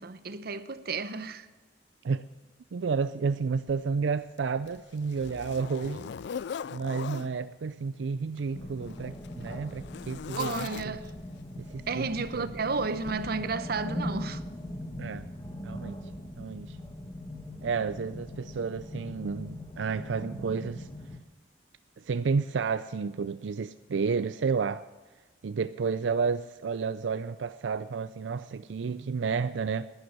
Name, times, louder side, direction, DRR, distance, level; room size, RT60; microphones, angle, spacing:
voice 1, 0.0-1.5 10.4-11.1 11.9-14.4, right 4 dB, 60° right, 0.9 m, -32 dB
voice 2, 2.7-6.1 6.7-11.0 11.6-12.5 15.0-15.3 15.6-16.0 16.4-16.8 17.6-20.9 22.0-24.8 25.4-29.9, right 5 dB, 90° right, 0.4 m, -31 dB
Zipper (clothing), 3.7-3.8 4.4-7.3 8.3-11.2 12.2-12.4 13.0-13.1, left 7 dB, 65° left, 0.3 m, -40 dB
sound 1, 8.5-21.2, left 1 dB, 20° left, 1.2 m, -40 dB
11.5 x 11.0 x 7.5 m
head